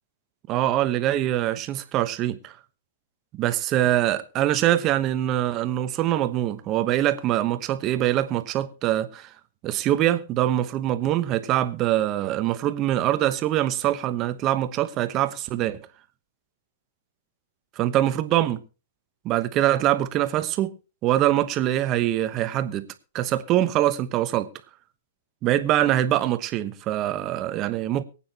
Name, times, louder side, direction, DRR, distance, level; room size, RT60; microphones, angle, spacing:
voice 1, 0.5-2.5 3.3-9.3 9.6-15.8 17.8-18.6 19.2-20.7 21.0-22.9 23.1-24.5 25.4-28.0, right 13 dB, 30° right, 1.0 m, -23 dB
23.5 x 8.8 x 2.9 m
hypercardioid pair, 150°, 0 cm